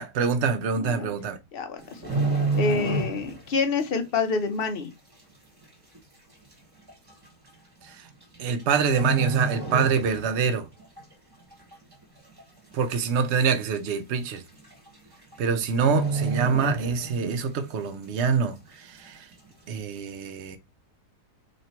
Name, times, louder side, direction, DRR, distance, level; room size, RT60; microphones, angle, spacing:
voice 1, 0.0-1.4 7.8-7.9 8.4-10.7 12.7-14.4 15.4-19.2 19.7-20.6, right 6 dB, 55° right, 0.8 m, -25 dB
voice 2, 0.7-1.1 1.5-2.0 2.5-4.9, left 4 dB, 50° left, 0.7 m, -27 dB
sound 1, 1.8-3.5 3.8-4.1 4.6-4.7 5.6-5.7 5.9-6.0 6.9-7.1 8.2-8.6 8.9-10.5 10.8-11.0 11.5-12.0 12.4-12.5 12.7-12.8 13.2-13.3 14.3-14.4 14.6-14.9 15.2-15.3 15.7-17.4 17.7-17.8, right 3 dB, 15° right, 1.1 m, -28 dB
3.1 x 2.9 x 4.3 m
omnidirectional pair, 1.7 m